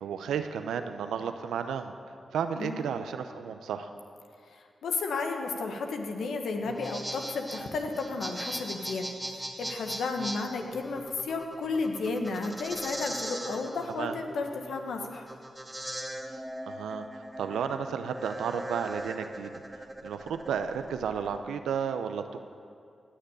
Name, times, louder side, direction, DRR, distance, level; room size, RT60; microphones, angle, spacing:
voice 1, 0.0-2.0 2.3-3.9 13.9-14.2 16.3-16.4 16.7-19.5 20.0-22.4, right 7 dB, 85° right, 8 dB, 0.7 m, -33 dB
voice 2, 4.5-15.3, left 3 dB, 80° left, 4 dB, 1.3 m, -33 dB
sound 1, 6.6-21.4, right 1 dB, 10° right, 2.0 m, -40 dB
17.5 x 6.7 x 8.9 m, 2.4 s
supercardioid pair, 45°, 0 cm